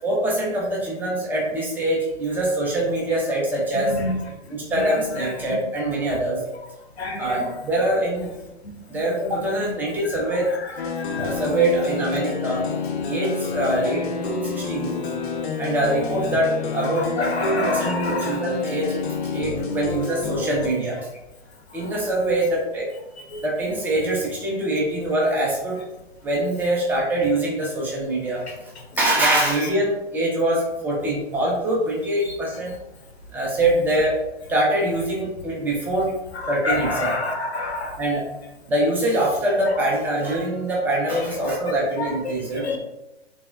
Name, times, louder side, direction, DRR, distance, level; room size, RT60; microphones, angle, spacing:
voice 1, 0.0-4.0 4.5-6.4 7.2-8.3 8.9-10.5 11.2-12.7 13.1-14.9 15.6-19.0 19.3-21.0 21.7-22.9 23.4-25.8 26.2-28.5 29.0-32.7 33.3-34.2 34.5-36.1 36.5-37.1 38.0-38.2 38.7-42.7, right 1 dB, 5° right, -4 dB, 0.5 m, -24 dB
voice 2, 7.0-7.3 11.1-11.3 17.2-18.3 23.3-23.4 36.6-37.9 41.1-41.2 42.0-42.1 42.6-42.8, left 2 dB, 85° left, 1 dB, 0.7 m, -26 dB
sound 1, 10.8-20.7, left 4 dB, 55° left, 0.5 m, -28 dB
3.2 x 2.8 x 2.2 m, 0.97 s
figure-of-eight pair, 115°, 31 cm